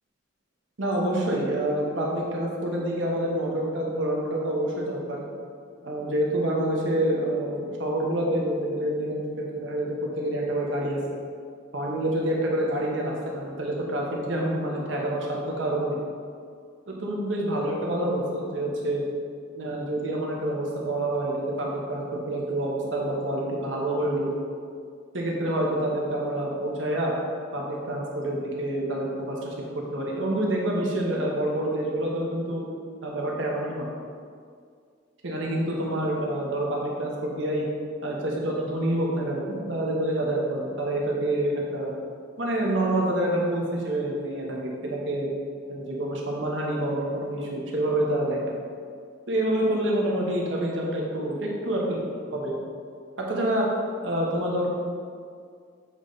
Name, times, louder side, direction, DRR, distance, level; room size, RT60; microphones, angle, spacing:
voice 1, 0.8-5.2 5.8-9.2 9.5-9.9 10.2-11.0 11.7-16.0 16.9-19.0 19.5-24.3 25.1-27.1 27.5-29.5 29.9-32.6 33.0-33.9 35.2-37.6 38.0-41.9 42.4-45.3 45.7-48.6 49.3-52.0 52.3-52.5 53.2-53.7 54.0-54.7, right 1 dB, 80° right, -2 dB, 1.1 m, -27 dB
7.3 x 3.2 x 4.0 m, 2.2 s
head